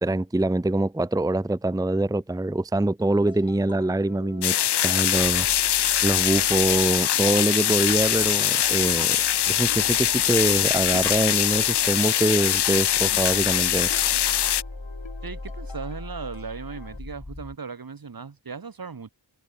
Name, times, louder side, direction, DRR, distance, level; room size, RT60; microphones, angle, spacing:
voice 1, 0.0-4.5 4.8-5.5 6.0-9.2 9.5-13.9, right 1 dB, 10° right, 0.7 m, -24 dB
sound 1, 3.3-17.0, left 5 dB, 80° left, 4.8 m, -47 dB
sound 2, 4.4-14.6, left 10 dB, 65° left, 0.5 m, -22 dB
sound 3, 5.1-17.6, left 2 dB, 15° left, 1.6 m, -42 dB
voice 2, 15.2-19.1, right 5 dB, 50° right, 1.4 m, -37 dB
wide cardioid pair, 75°, 45 cm